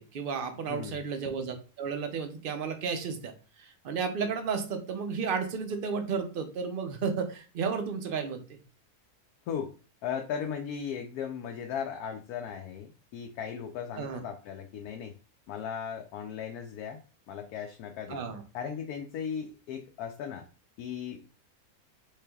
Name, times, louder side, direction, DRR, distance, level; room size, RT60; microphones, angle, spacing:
voice 1, 0.0-3.3 3.6-8.6 14.0-14.2 18.1-18.4, right 5 dB, 70° right, 6 dB, 0.5 m, -33 dB
voice 2, 0.7-1.0 9.5-9.7 10.0-15.1 15.5-17.0 17.3-18.2 18.5-20.4 20.8-21.2, left 7 dB, 85° left, 3 dB, 1.1 m, -37 dB
4.5 x 3.2 x 2.2 m, 0.35 s
omnidirectional pair, 1.6 m